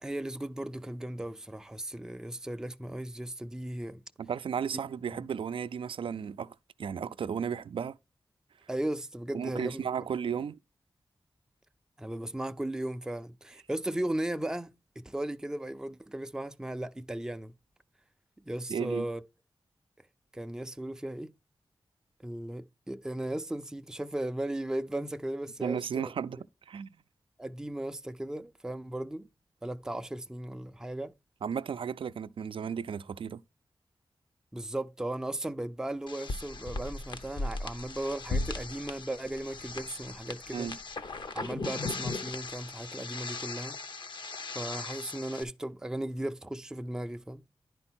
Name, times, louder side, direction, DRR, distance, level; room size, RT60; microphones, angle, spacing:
voice 1, 0.0-4.0 8.7-9.9 12.0-17.5 18.4-19.2 20.3-21.3 22.2-26.1 27.4-29.3 29.6-31.1 34.5-40.7 41.3-43.8 44.6-47.4, right 1 dB, 5° right, 0.4 m, -36 dB
voice 2, 4.2-6.5 6.8-8.0 9.3-10.6 18.7-19.1 25.6-27.0 31.4-33.4 40.5-40.8, right 7 dB, 75° right, 0.4 m, -34 dB
sound 1, 36.1-45.4, left 3 dB, 60° left, 0.9 m, -38 dB
10.5 x 4.5 x 4.3 m
wide cardioid pair, 115°, 9 cm